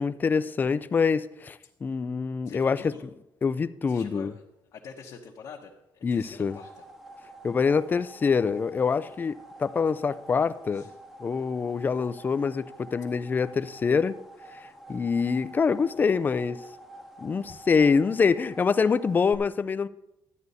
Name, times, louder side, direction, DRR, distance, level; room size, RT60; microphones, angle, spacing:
voice 1, 0.0-2.9 3.4-4.3 6.0-6.6 7.4-10.9 11.2-14.2 14.6-16.6 17.2-19.9, left 5 dB, 25° left, 0.4 m, -25 dB
voice 2, 2.4-3.0 3.9-4.3 4.7-6.8 10.7-10.9 15.7-15.9, left 5 dB, 55° left, 1.1 m, -45 dB
sound 1, 6.2-19.3, right 1 dB, 5° right, 0.9 m, -48 dB
12.5 x 9.3 x 4.1 m
cardioid pair, 145°, 8 cm